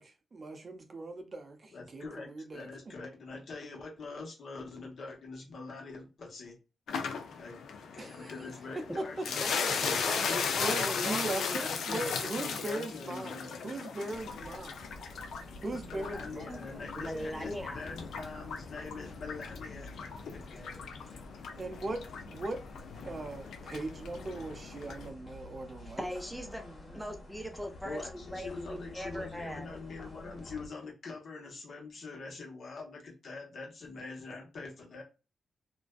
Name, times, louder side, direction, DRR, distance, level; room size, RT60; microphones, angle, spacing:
voice 1, 0.0-2.7 8.0-8.3 9.0-9.1 10.6-14.8 15.6-16.6 21.6-22.6 23.0-26.1, right 2 dB, 45° right, 0.6 m, -39 dB
voice 2, 1.7-6.6 7.4-7.6 7.9-14.3 15.9-19.9 20.3-20.8 27.8-35.0, left 3 dB, 65° left, 1.0 m, -44 dB
sound 1, 6.9-25.1, left 6 dB, 80° left, 0.4 m, -37 dB
voice 3, 9.4-11.2 17.0-17.8 26.0-29.7, equal, ahead, 0.6 m, -40 dB
sound 2, 14.1-30.7, left 2 dB, 45° left, 1.2 m, -49 dB
2.5 x 2.2 x 2.2 m
cardioid pair, 65°, 0 cm